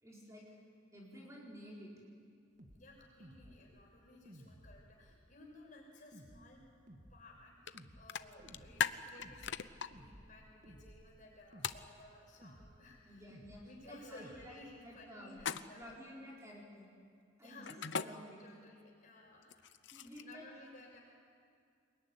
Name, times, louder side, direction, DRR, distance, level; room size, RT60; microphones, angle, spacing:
voice 1, 0.0-0.5 0.9-1.9 13.0-15.4 15.7-16.9 17.4-18.4 19.9-20.5, equal, 15° right, -4 dB, 4.3 m, -52 dB
sound 1, 2.6-2.8 3.2-3.6 4.3-5.0 6.1-6.5 6.9-7.2 7.7-8.1 8.4-8.8 9.2-9.6 9.9-10.3 10.6-11.1 11.5-11.9 12.4-12.8 13.3-13.7 14.2-14.5, equal, 40° right, 2.1 m, -56 dB
voice 2, 2.7-6.6 7.1-13.3 13.6-15.9 17.4-17.7 18.4-19.6 20.2-21.0, left 2 dB, 40° left, -1 dB, 6.6 m, -57 dB
sound 2, 7.7-7.8 8.1-9.9 11.6-11.8 15.4-15.9 17.7-18.1 19.4-20.3, left 7 dB, 60° left, 0.7 m, -38 dB
24.0 x 21.0 x 10.0 m, 2.2 s
head